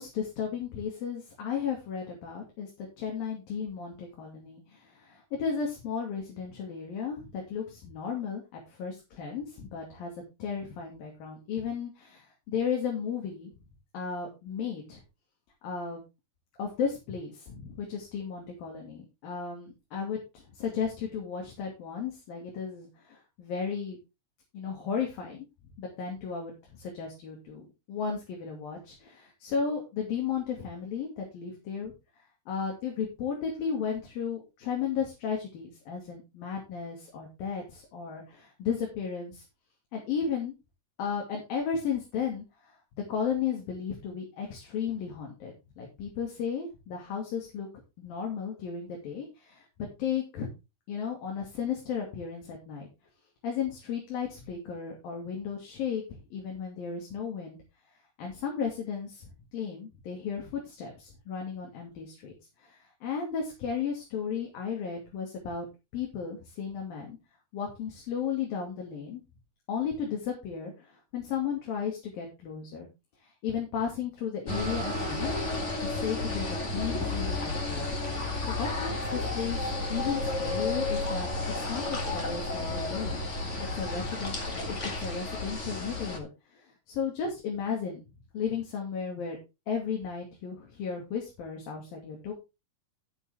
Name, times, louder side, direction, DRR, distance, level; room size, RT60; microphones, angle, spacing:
voice 1, 0.0-10.1 10.4-13.5 13.9-15.0 15.6-16.0 16.6-24.0 24.5-25.5 25.8-31.9 32.5-39.4 39.9-40.5 41.0-42.7 43.1-47.7 48.0-49.7 50.0-50.5 50.9-52.9 53.4-57.6 58.2-62.3 62.6-65.7 65.9-67.2 67.5-69.2 69.7-72.9 73.2-75.5 75.8-77.9 78.4-81.3 81.5-83.2 83.7-88.0 88.3-89.4 89.7-92.3, left 6 dB, 80° left, 0 dB, 4.2 m, -34 dB
sound 1, 74.5-86.2, left 2 dB, 30° left, 1.3 m, -32 dB
Acoustic guitar, 74.5-78.1, right 11 dB, 60° right, 1.4 m, -44 dB
12.0 x 8.2 x 3.6 m, 0.26 s
omnidirectional pair, 4.0 m